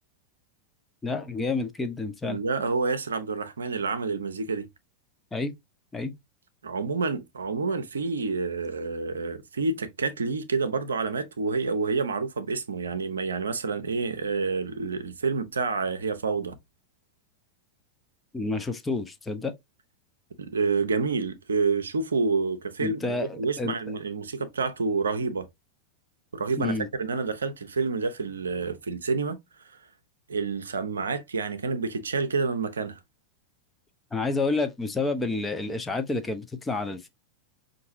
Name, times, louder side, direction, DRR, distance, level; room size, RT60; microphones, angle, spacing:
voice 1, 1.0-2.4 5.3-5.5 5.9-6.1 18.3-19.5 22.8-23.7 26.6-26.9 34.1-37.1, left 3 dB, 10° left, 0.6 m, -29 dB
voice 2, 2.2-4.7 6.6-16.6 20.4-25.5 26.3-29.4 30.3-33.0, right 4 dB, 70° right, 0.6 m, -28 dB
5.5 x 2.6 x 2.6 m
figure-of-eight pair, 90°, 0 cm